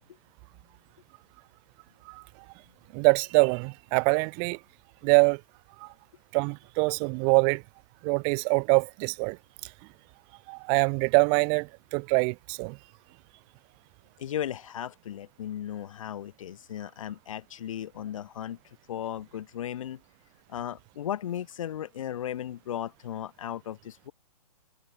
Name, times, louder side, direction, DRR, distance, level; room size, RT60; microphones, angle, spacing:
voice 1, 2.9-4.6 5.0-5.4 5.8-5.9 6.3-7.6 8.0-9.4 10.5-12.8, right 40 dB or more, 25° right, 0.6 m, -24 dB
voice 2, 14.2-18.6 18.9-20.0 20.5-24.1, left 10 dB, 55° left, 6.4 m, -36 dB
hypercardioid pair, 135°, 21 cm